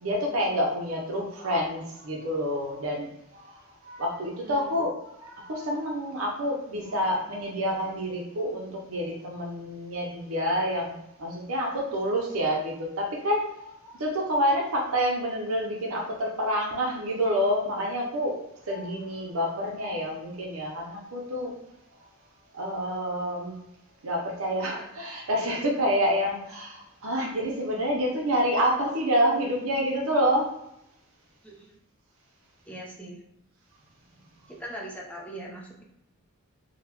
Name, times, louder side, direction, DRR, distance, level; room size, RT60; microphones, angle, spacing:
voice 1, 0.0-18.4 18.7-21.5 22.5-23.6 24.0-30.6, equal, 75° right, -1 dB, 0.6 m, -28 dB
voice 2, 31.4-31.8 32.7-33.2 34.5-35.8, right 1 dB, 5° left, -3 dB, 0.6 m, -41 dB
3.8 x 2.1 x 2.9 m, 0.80 s
head